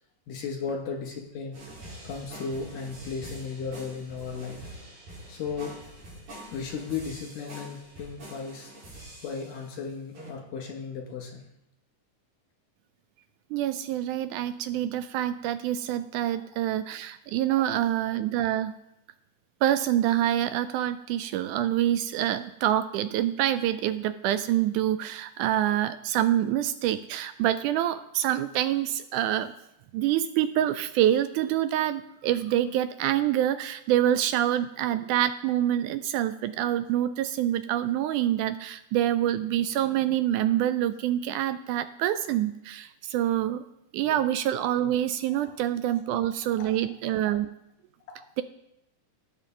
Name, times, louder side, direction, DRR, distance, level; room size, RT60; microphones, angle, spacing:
voice 1, 0.3-1.6 2.0-4.6 5.3-5.7 6.5-8.7 9.2-11.4 16.3-16.4 17.5-17.6 44.0-44.2 45.4-45.5 46.6-46.7 48.2-48.3, left 5 dB, 80° left, 1 dB, 3.5 m, -35 dB
sound 1, 1.5-9.7 10.2-10.3, right 1 dB, 65° right, 5.1 m, -45 dB
voice 2, 13.5-18.7 19.6-29.5 29.9-43.6 43.9-47.5, right 12 dB, 80° right, 12 dB, 1.9 m, -26 dB
16.5 x 7.3 x 3.8 m, 0.83 s
omnidirectional pair, 3.8 m